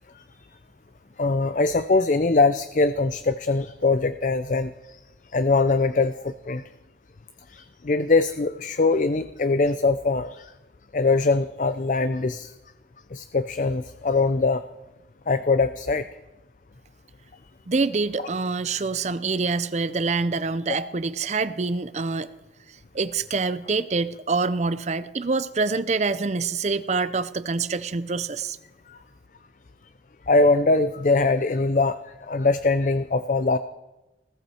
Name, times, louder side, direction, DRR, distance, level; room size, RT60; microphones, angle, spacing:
voice 1, 1.2-5.0 5.3-6.6 7.5-10.5 10.9-12.5 13.1-14.6 15.3-16.1 28.9-29.0 30.3-33.6, left 3 dB, 45° left, 12 dB, 0.5 m, -22 dB
voice 2, 17.7-22.3 22.9-28.6, right 4 dB, 40° right, 14 dB, 0.5 m, -26 dB
20.0 x 16.5 x 4.4 m, 1.0 s
head